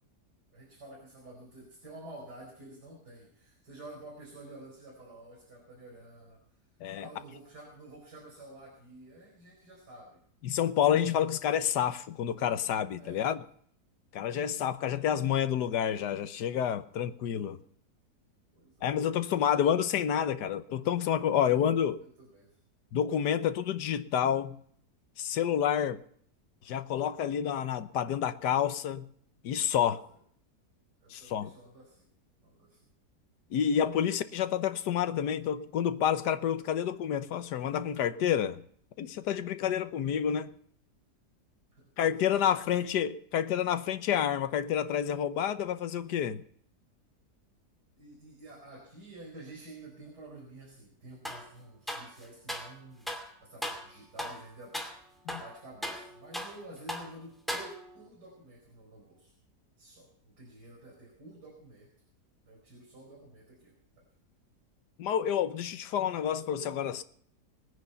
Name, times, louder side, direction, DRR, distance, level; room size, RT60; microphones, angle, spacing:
voice 1, 0.5-6.4 7.0-10.2 13.0-13.3 14.2-14.5 18.5-19.6 21.5-21.6 22.0-22.6 29.8-30.2 31.0-32.1 32.4-32.9 34.0-34.1 41.7-42.8 48.0-53.1 53.4-54.7 55.4-59.3 59.8-61.9 62.5-64.0, right 1 dB, 75° right, 5.6 m, -50 dB
voice 2, 10.4-13.4 14.1-17.6 18.8-22.0 22.9-24.6 25.2-26.0 26.7-29.1 29.4-30.0 31.1-31.5 33.5-38.6 39.0-40.5 42.0-46.4 55.3-55.4 65.0-67.0, left 9 dB, 85° left, 1.5 m, -29 dB
sound 1, 51.2-51.5 51.9-52.7 53.1-53.3 53.6-53.9 54.2-54.4 54.7-55.0 55.3-56.6 56.9-57.1 57.5-58.0, equal, ahead, 2.3 m, -38 dB
21.5 x 9.9 x 5.7 m
omnidirectional pair, 1.7 m